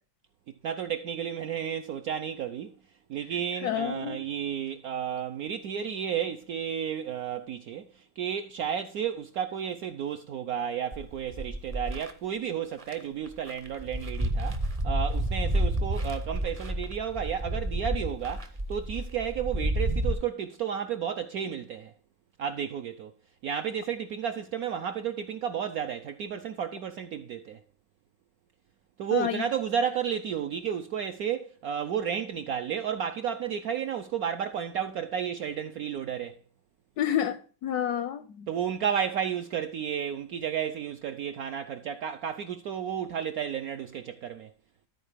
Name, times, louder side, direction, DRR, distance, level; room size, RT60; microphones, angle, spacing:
voice 1, 0.6-2.7 3.1-21.9 22.4-23.1 23.4-27.6 29.0-36.4 38.5-44.5, right 8 dB, 75° right, 0.8 m, -32 dB
voice 2, 3.6-4.2 29.1-29.4 37.0-38.5, left 10 dB, 70° left, 0.9 m, -29 dB
sound 1, 10.9-12.1 12.8-12.9 13.3-20.1, right 1 dB, 35° right, 0.5 m, -30 dB
13.0 x 4.5 x 5.0 m
omnidirectional pair, 2.1 m